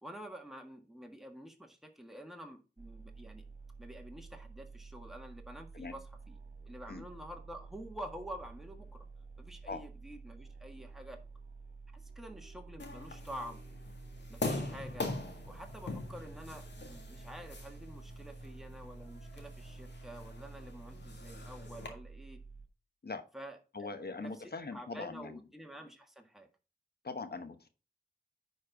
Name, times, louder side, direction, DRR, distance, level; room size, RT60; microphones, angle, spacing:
voice 1, 0.0-3.4 3.8-6.4 6.6-9.1 9.4-11.2 11.9-13.7 14.3-15.1 15.5-22.4 23.3-26.5, equal, ahead, 3 dB, 1.7 m, -48 dB
sound 1, 2.8-22.7, right 4 dB, 60° right, 1.8 m, -51 dB
sound 2, 12.8-21.9, left 2 dB, 85° left, 1.9 m, -42 dB
voice 2, 23.7-25.4 27.0-27.7, left 3 dB, 65° left, 9 dB, 1.1 m, -41 dB
10.0 x 4.4 x 4.6 m, 0.32 s
wide cardioid pair, 65°, 18 cm